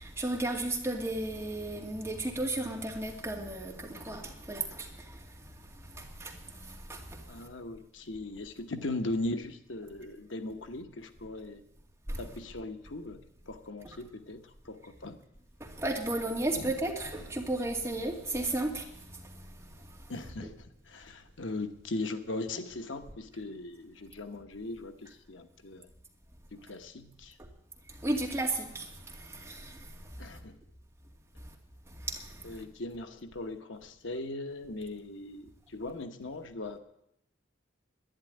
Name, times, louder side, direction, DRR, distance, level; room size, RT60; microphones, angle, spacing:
voice 1, 0.0-5.3 5.7-7.4 12.1-12.2 15.6-19.9 27.9-29.9 30.3-30.4 32.0-32.6, right 2 dB, 15° right, 2.3 m, -34 dB
voice 2, 7.3-11.6 12.2-13.2 13.5-15.2 16.5-16.7 20.1-25.9 26.5-27.4 30.2-30.6 32.4-36.8, left 2 dB, 80° left, 1.2 m, -39 dB
11.5 x 10.5 x 9.9 m
head